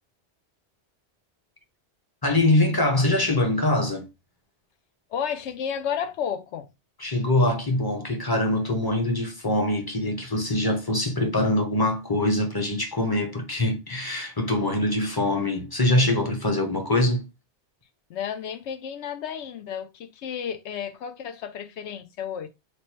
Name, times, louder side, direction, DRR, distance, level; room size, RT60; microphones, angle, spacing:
voice 1, 2.2-4.1 7.0-17.3, left 1 dB, 25° left, 0.6 m, -23 dB
voice 2, 5.1-6.7 18.1-22.5, left 8 dB, 90° left, 0.9 m, -32 dB
3.3 x 2.1 x 4.2 m
omnidirectional pair, 1.1 m